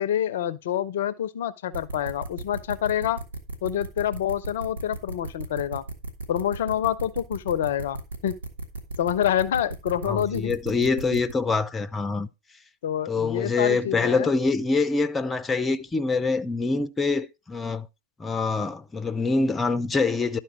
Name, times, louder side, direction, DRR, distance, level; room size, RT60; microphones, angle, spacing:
voice 1, 0.0-3.2 3.6-5.8 6.3-8.3 9.0-10.5 12.8-14.3, left 10 dB, 55° left, 0.5 m, -27 dB
sound 1, 1.7-11.3, right 3 dB, 75° right, 1.5 m, -35 dB
voice 2, 10.0-12.3 13.1-17.9 18.2-20.4, left 4 dB, 15° left, 0.6 m, -25 dB
11.5 x 4.4 x 4.6 m
figure-of-eight pair, 90°, 0 cm